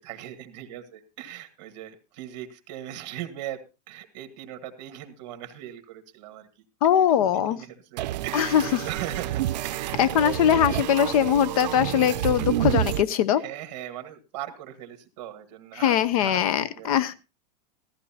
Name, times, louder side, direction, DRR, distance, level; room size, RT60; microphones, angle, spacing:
voice 1, 0.0-3.6 3.9-6.5 7.0-7.1 7.3-10.4 13.3-16.4 16.7-16.9, right 12 dB, 45° right, 8 dB, 1.6 m, -39 dB
voice 2, 6.8-7.6 8.3-8.9 10.0-13.4 15.8-17.1, left 10 dB, 55° left, 18 dB, 0.8 m, -21 dB
sound 1, 8.0-13.0, right 14 dB, 90° right, 0.5 m, -29 dB
15.0 x 14.0 x 2.8 m, 0.30 s
supercardioid pair, 170°, 21 cm